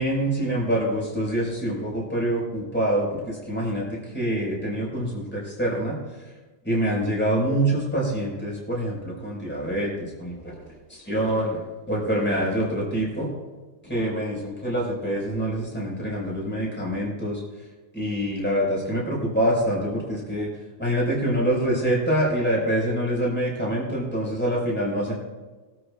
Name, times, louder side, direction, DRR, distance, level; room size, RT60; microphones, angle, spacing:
voice 1, 0.0-6.0 6.6-9.9 10.2-10.6 10.9-13.3 13.9-17.4 17.9-20.5 20.8-25.1, right 1 dB, 5° left, -3 dB, 5.0 m, -25 dB
22.5 x 12.5 x 2.5 m, 1.2 s
omnidirectional pair, 3.8 m